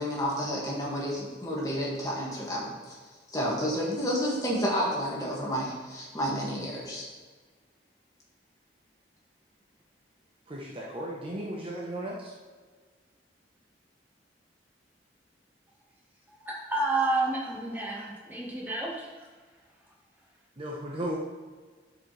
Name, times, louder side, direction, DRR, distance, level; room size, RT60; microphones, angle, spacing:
voice 1, 0.0-3.0 3.3-7.1, equal, 20° left, -5 dB, 2.0 m, -30 dB
voice 2, 10.5-12.3 20.6-21.2, right 1 dB, 30° right, -3 dB, 0.9 m, -35 dB
voice 3, 16.4-19.0, right 2 dB, 10° right, -4 dB, 1.6 m, -29 dB
11.5 x 5.2 x 3.3 m, 1.4 s
head